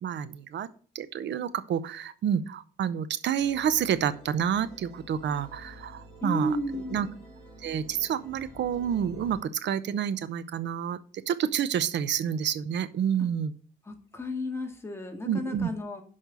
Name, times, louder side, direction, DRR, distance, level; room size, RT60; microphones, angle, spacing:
voice 1, 0.0-0.7 0.9-6.6 6.9-7.1 7.6-11.0 11.3-13.5 15.2-15.7, right 8 dB, 65° right, 15 dB, 0.8 m, -29 dB
sound 1, 3.4-9.4, equal, 15° right, 4.4 m, -49 dB
voice 2, 6.2-7.1 13.9-16.0, equal, 10° left, 2 dB, 1.9 m, -33 dB
6.4 x 5.5 x 6.7 m, 0.42 s
cardioid pair, 90°, 20 cm